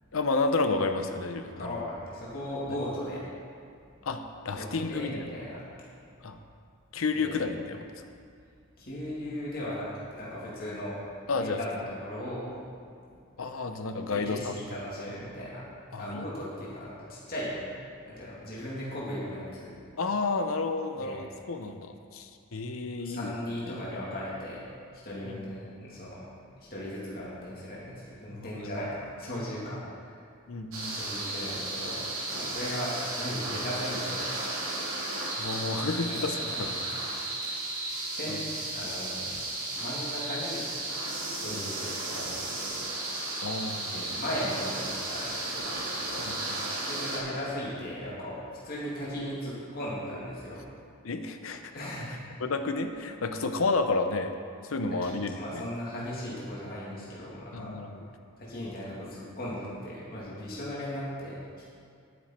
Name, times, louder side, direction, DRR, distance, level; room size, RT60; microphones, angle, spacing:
voice 1, 0.1-1.9 4.0-5.4 6.2-6.4 6.9-8.0 11.3-11.6 13.4-14.6 15.9-16.3 20.0-23.3 23.7-23.8 25.2-25.4 28.3-28.7 29.4-29.5 30.5-31.0 35.4-36.8 38.3-38.4 41.5-41.7 43.4-44.2 46.3-46.6 51.0-51.8 52.4-54.3 54.6-55.6 57.5-58.1, left 3 dB, 70° left, 7 dB, 0.8 m, -31 dB
voice 2, 1.6-3.2 3.8-3.9 4.5-5.6 6.1-6.3 7.1-7.4 8.8-11.0 11.4-12.5 14.1-17.6 18.0-19.8 21.0-21.2 23.0-24.6 24.9-26.2 26.6-30.2 31.0-34.3 36.1-36.3 38.1-38.4 38.7-39.5 39.8-40.7 41.3-42.8 43.9-46.3 46.8-50.6 51.7-52.2 55.0-57.7 58.4-61.7, equal, 45° left, -7 dB, 2.3 m, -37 dB
sound 1, 30.7-47.2, right 2 dB, 70° right, 2.5 m, -34 dB
10.5 x 9.6 x 4.3 m, 2.3 s
head